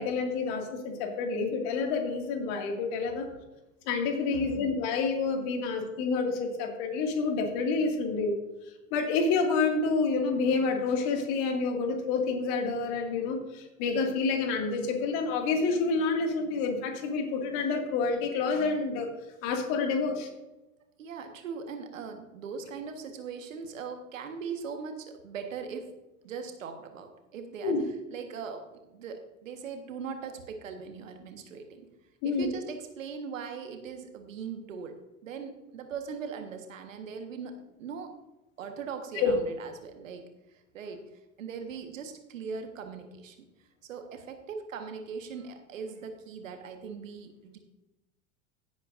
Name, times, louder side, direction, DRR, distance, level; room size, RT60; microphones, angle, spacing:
voice 1, 0.0-3.3 3.8-8.4 8.9-19.1 19.4-20.3 27.6-27.8 32.2-32.5 39.2-39.3, left 4 dB, 50° left, 3 dB, 2.3 m, -28 dB
voice 2, 21.0-25.9 26.2-27.7 28.1-31.9 32.2-37.5 37.8-38.1 38.6-40.2 40.5-41.0 41.4-43.4 43.9-47.6, right 6 dB, 70° right, 6 dB, 1.5 m, -40 dB
16.0 x 8.1 x 2.6 m, 1.0 s
figure-of-eight pair, 85°, 40 cm